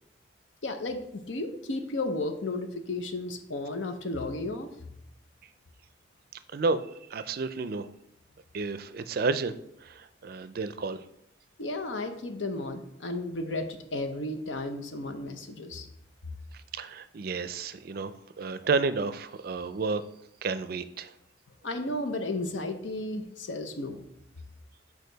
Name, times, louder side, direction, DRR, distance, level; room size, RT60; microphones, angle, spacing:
voice 1, 0.6-4.7 11.6-15.9 21.6-24.1, left 2 dB, 80° left, 7 dB, 0.8 m, -33 dB
voice 2, 6.5-6.8 7.1-7.9 8.5-9.6 9.8-11.0 16.7-20.0 20.4-21.1, right 4 dB, 55° right, 13 dB, 0.4 m, -31 dB
6.6 x 4.9 x 3.9 m, 0.78 s
head